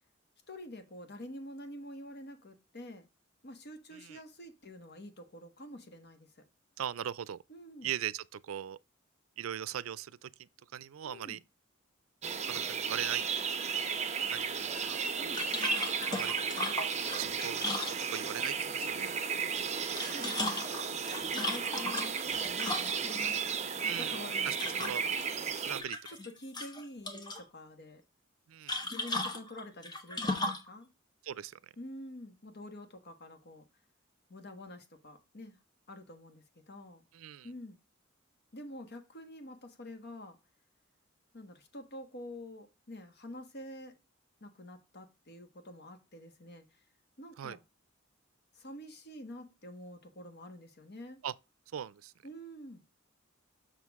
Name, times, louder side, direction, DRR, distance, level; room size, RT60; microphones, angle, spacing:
voice 1, 0.5-3.1 3.4-6.4 7.5-7.9 11.0-11.4 15.2-15.5 20.1-20.8 21.3-23.5 23.8-25.1 26.1-28.0 28.8-30.9 31.8-33.7 34.3-35.6 35.9-37.0 37.4-37.8 38.5-40.4 41.3-43.9 44.4-46.8 47.2-47.6 48.5-51.2 52.2-52.8, left 1 dB, 55° left, 1.4 m, -47 dB
voice 2, 6.8-7.4 7.8-8.8 9.4-11.4 12.5-13.2 14.3-15.0 16.1-16.8 17.1-19.1 23.8-25.0 25.6-26.0 28.5-28.8 31.2-31.6 37.1-37.5 47.4-47.6 51.2-51.3 51.7-52.1, right 10 dB, 90° right, 0.4 m, -40 dB
sound 1, 12.2-25.8, right 6 dB, 35° right, 0.9 m, -34 dB
sound 2, 15.3-18.5 19.7-23.2 24.5-25.2 25.6-26.3 26.5-27.4 28.7-30.7, left 2 dB, 20° left, 1.1 m, -36 dB
6.3 x 6.3 x 3.6 m
head